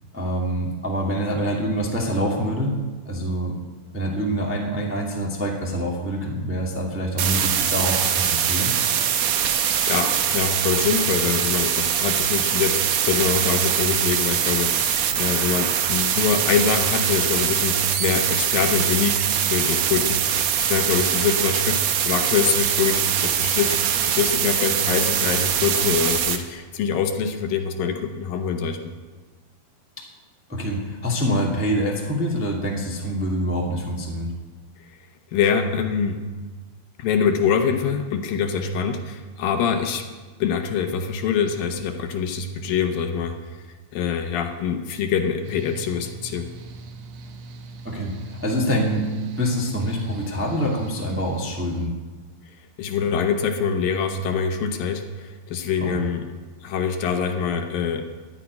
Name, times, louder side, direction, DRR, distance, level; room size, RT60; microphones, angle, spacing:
voice 1, 0.1-2.7 3.0-3.5 3.9-8.7 30.5-34.3 47.8-48.1 48.4-49.1 49.4-51.9 55.8-56.0, equal, 5° right, -2 dB, 1.1 m, -25 dB
sound 1, 7.2-26.4, right 9 dB, 85° right, 1.5 m, -22 dB
voice 2, 9.9-28.9 34.8-34.9 35.3-36.2 37.0-40.1 40.4-43.6 43.9-46.5 52.8-56.3 56.6-58.1, left 6 dB, 75° left, 5 dB, 2.5 m, -24 dB
Mechanical fan, 45.4-51.9, right 3 dB, 70° right, 1.7 m, -41 dB
11.5 x 10.0 x 9.7 m, 1.3 s
omnidirectional pair, 4.5 m